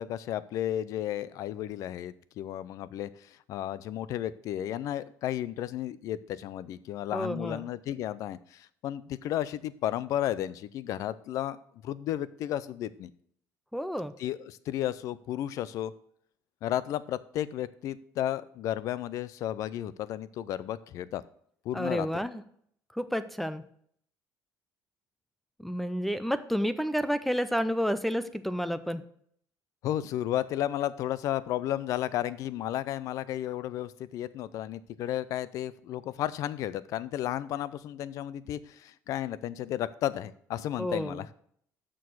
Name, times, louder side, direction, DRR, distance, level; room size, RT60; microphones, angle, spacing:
voice 1, 0.0-11.6 11.8-13.1 14.2-15.9 16.6-21.2 21.6-22.1 29.8-41.3, left 12 dB, 55° left, 17 dB, 0.5 m, -33 dB
voice 2, 7.1-7.7 13.7-14.1 21.7-22.4 22.9-23.6 25.6-29.0 40.8-41.2, equal, ahead, 13 dB, 0.4 m, -30 dB
7.0 x 6.3 x 6.1 m, 0.64 s
cardioid pair, 160°, 7 cm